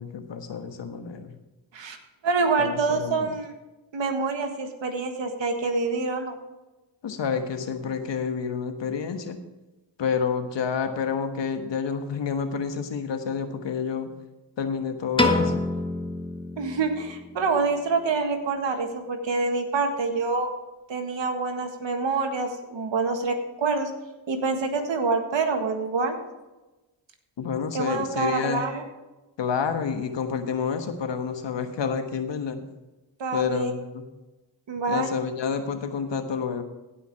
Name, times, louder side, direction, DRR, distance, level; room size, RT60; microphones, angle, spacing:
voice 1, 0.0-1.3 2.6-3.3 7.0-9.4 10.0-14.1 14.6-15.6 27.4-28.6 29.4-32.6 33.3-34.1 34.9-36.6, left 6 dB, 70° left, 7 dB, 1.4 m, -29 dB
voice 2, 2.2-3.5 3.9-6.4 16.6-20.5 20.9-23.9 24.3-26.2 27.7-28.8 33.2-33.7 34.7-35.1, right 4 dB, 70° right, 5 dB, 1.8 m, -26 dB
Piano, 15.2-17.4, left 2 dB, 10° left, 1.4 m, -26 dB
16.0 x 5.8 x 4.7 m, 1.1 s
cardioid pair, 50°, 45 cm